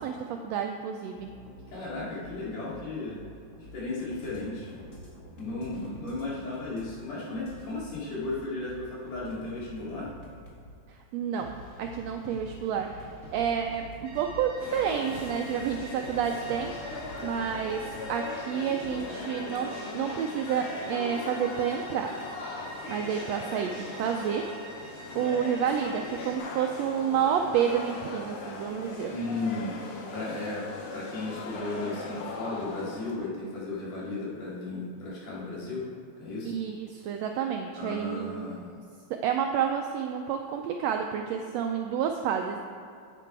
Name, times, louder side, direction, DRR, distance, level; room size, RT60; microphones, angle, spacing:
voice 1, 0.0-1.3 10.9-13.1 13.3-16.7 17.2-22.2 22.9-24.5 25.1-29.1 36.4-38.5 39.1-42.6, right 8 dB, 85° right, 4 dB, 1.5 m, -30 dB
sound 1, 1.2-6.9 7.2-10.7 11.4-19.2, equal, 30° left, 1.8 m, -47 dB
voice 2, 1.7-3.2 3.7-4.7 5.3-10.1 29.1-29.7 30.1-30.6 30.9-35.8 36.2-36.6 37.7-38.7, left 2 dB, 60° left, -7 dB, 3.8 m, -35 dB
sound 2, 14.0-26.4, right 1 dB, 55° right, 1.4 m, -47 dB
sound 3, 14.6-33.2, left 3 dB, 90° left, 2.7 m, -39 dB
9.8 x 8.4 x 4.6 m, 2.5 s
omnidirectional pair, 3.5 m